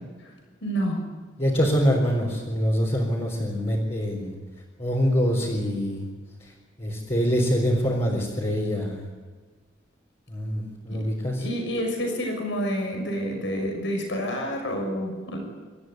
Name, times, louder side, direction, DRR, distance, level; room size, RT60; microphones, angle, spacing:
voice 1, 0.6-1.0 10.9-11.0 11.4-15.4, equal, 70° left, 2 dB, 6.3 m, -28 dB
voice 2, 1.4-4.3 4.8-6.0 6.8-9.0 10.3-11.4, equal, 30° left, -4 dB, 4.1 m, -24 dB
26.5 x 13.5 x 9.5 m, 1.4 s
head